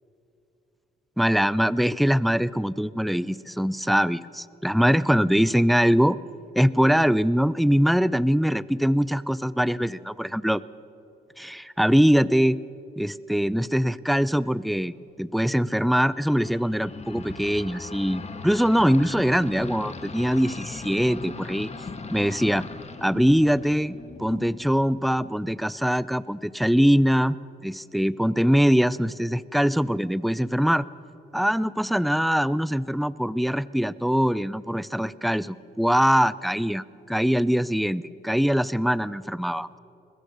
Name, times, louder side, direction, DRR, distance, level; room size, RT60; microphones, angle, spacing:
voice 1, 1.2-6.2 6.6-10.6 11.4-12.6 13.0-21.7 22.1-22.6 23.0-27.4 27.6-30.9 31.3-39.8, equal, ahead, 18 dB, 0.4 m, -22 dB
sound 1, 16.1-25.4, left 4 dB, 35° left, 1.8 m, -39 dB
21.0 x 21.0 x 6.6 m, 2.8 s
cardioid pair, 90°, 20 cm